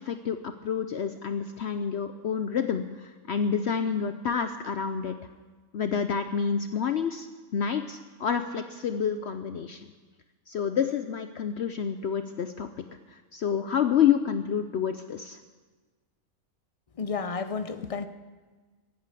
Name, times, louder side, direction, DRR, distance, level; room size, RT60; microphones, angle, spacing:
voice 1, 0.0-5.1 5.7-7.3 7.5-9.9 10.5-12.7 13.1-15.4, left 7 dB, 60° left, 8 dB, 0.8 m, -28 dB
voice 2, 17.0-18.1, left 5 dB, 45° left, 10 dB, 0.4 m, -31 dB
15.5 x 9.0 x 8.3 m, 1.3 s
omnidirectional pair, 1.5 m